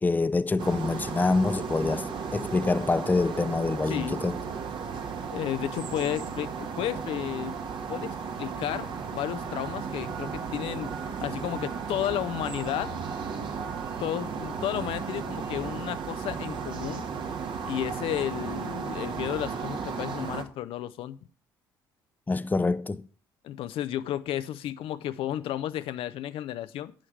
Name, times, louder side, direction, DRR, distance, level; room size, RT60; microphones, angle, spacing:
voice 1, 0.0-4.4 22.3-23.1, left 3 dB, 15° left, 0.6 m, -26 dB
Distant Road With Some Birds, 0.6-20.4, right 5 dB, 50° right, 1.5 m, -35 dB
voice 2, 3.9-4.2 5.3-7.5 7.9-13.0 14.0-17.1 17.7-21.2 23.4-26.9, left 12 dB, 60° left, 0.6 m, -33 dB
11.5 x 8.5 x 3.3 m
hypercardioid pair, 55°, 10 cm